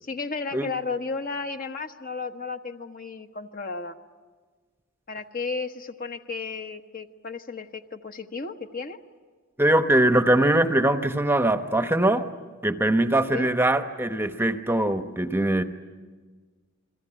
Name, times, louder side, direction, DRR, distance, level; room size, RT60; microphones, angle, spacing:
voice 1, 0.0-4.0 5.1-9.0 13.3-13.5, left 4 dB, 45° left, 6 dB, 1.2 m, -33 dB
voice 2, 9.6-12.3 12.6-15.6, right 1 dB, 10° right, 8 dB, 0.9 m, -22 dB
29.5 x 22.0 x 8.9 m, 1.4 s
head